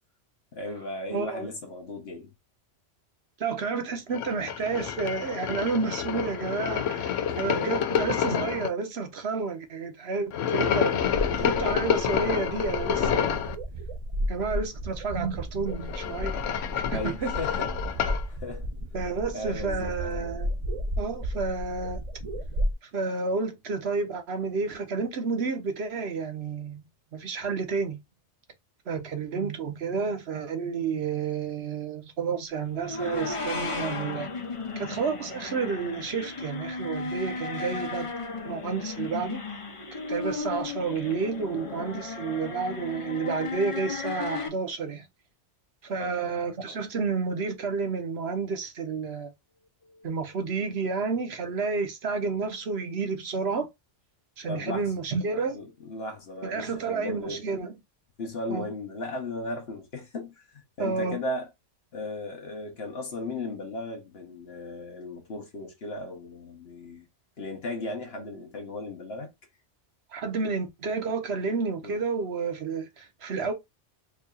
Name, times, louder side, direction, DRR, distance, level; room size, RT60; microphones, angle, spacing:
voice 1, 0.5-2.3 7.2-7.7 10.9-11.6 16.9-17.7 18.3-18.7 19.3-19.9 45.9-46.1 46.7-46.9 49.8-50.1 54.5-54.9 55.5-57.4 58.2-61.5 61.9-67.1 67.4-69.3 71.8-72.0 72.6-72.7, left 2 dB, 60° left, 1.2 m, -36 dB
voice 2, 1.1-1.5 3.4-11.0 11.4-13.4 14.3-16.4 16.8-17.3 18.9-20.5 21.0-22.0 22.8-26.8 27.1-28.0 28.9-34.3 34.8-38.1 38.5-39.4 40.1-45.1 45.8-49.3 50.0-53.7 54.4-55.6 56.4-57.7 58.5-58.7 60.8-61.2 70.1-73.5, right 4 dB, 65° right, 1.1 m, -30 dB
sound 1, 4.1-8.7 10.3-13.5 15.7-18.2, left 8 dB, 90° left, 0.9 m, -28 dB
sound 2, 11.0-22.7, equal, 40° right, 0.6 m, -33 dB
sound 3, 32.7-44.5, left 4 dB, 35° left, 0.6 m, -35 dB
4.6 x 2.7 x 2.3 m
omnidirectional pair, 1.2 m